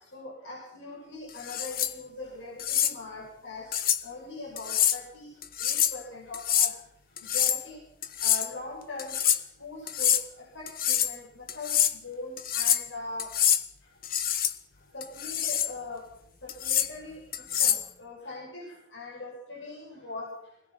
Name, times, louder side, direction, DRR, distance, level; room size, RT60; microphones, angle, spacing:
voice 1, 0.1-3.8 4.0-5.3 5.6-6.7 7.3-7.8 8.2-9.1 9.6-10.2 10.5-11.7 12.0-13.3 14.9-16.1 16.4-17.2 17.6-20.3, left 2 dB, 85° left, -3 dB, 6.6 m, -41 dB
sound 1, 1.4-1.9 2.6-2.9 3.7-4.0 4.6-5.0 5.4-6.0 6.3-6.7 7.2-7.6 8.0-8.5 9.0-9.4 9.9-10.2 10.7-11.1 11.5-11.9 12.4-12.9 13.2-13.6 14.0-14.5 15.0-15.7 16.5-16.9 17.3-17.9, left 10 dB, 50° left, 1.3 m, -26 dB
25.0 x 19.0 x 6.0 m, 0.73 s
head